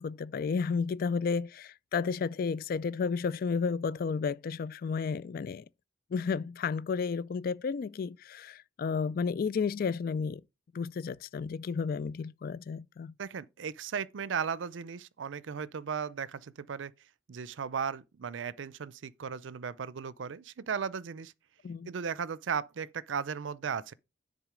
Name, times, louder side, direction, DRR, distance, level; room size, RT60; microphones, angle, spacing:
voice 1, 0.0-5.6 6.1-10.4 10.7-13.1 21.6-21.9, left 5 dB, 50° left, 0.3 m, -32 dB
voice 2, 13.2-16.9 17.3-21.3 21.9-23.9, right 6 dB, 80° right, 0.5 m, -36 dB
10.5 x 3.9 x 4.9 m
head